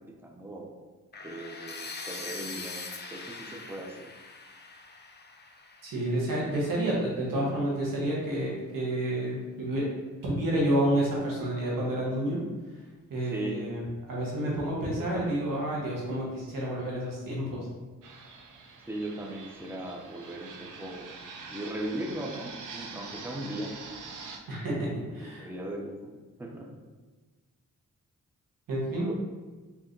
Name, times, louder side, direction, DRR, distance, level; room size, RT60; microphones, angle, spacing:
voice 1, 0.2-0.7 1.2-2.8 3.1-4.1 13.3-13.6 14.9-15.4 18.9-21.2 21.5-23.7 25.4-26.1 26.4-26.8, right 1 dB, 5° right, 1 dB, 0.7 m, -38 dB
sound 1, 1.1-7.0, left 3 dB, 30° left, 0.6 m, -42 dB
voice 2, 5.8-9.8 10.2-12.4 13.1-13.8 14.1-17.7 24.5-25.5 28.7-29.1, right 1 dB, 90° right, -4 dB, 1.2 m, -29 dB
Fixed-wing aircraft airplane, 18.0-24.4, right 4 dB, 70° right, 0.7 m, -45 dB
4.0 x 2.9 x 3.8 m, 1.3 s
cardioid pair, 50°, 32 cm